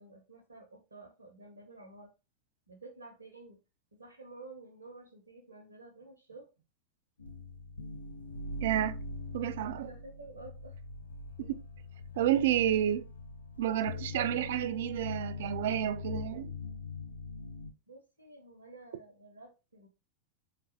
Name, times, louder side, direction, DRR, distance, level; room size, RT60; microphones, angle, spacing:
voice 1, 0.0-2.1 2.7-3.6 3.9-6.5 9.7-10.8 17.9-19.9, right 3 dB, 75° right, 0.7 m, -51 dB
sound 1, 7.2-17.7, left 3 dB, 75° left, 0.5 m, -42 dB
voice 2, 8.6-9.0 9.3-9.9 11.4-11.6 12.2-13.1 13.6-16.5, right 11 dB, 55° right, 0.3 m, -30 dB
3.8 x 3.3 x 2.7 m
figure-of-eight pair, 90°, 0 cm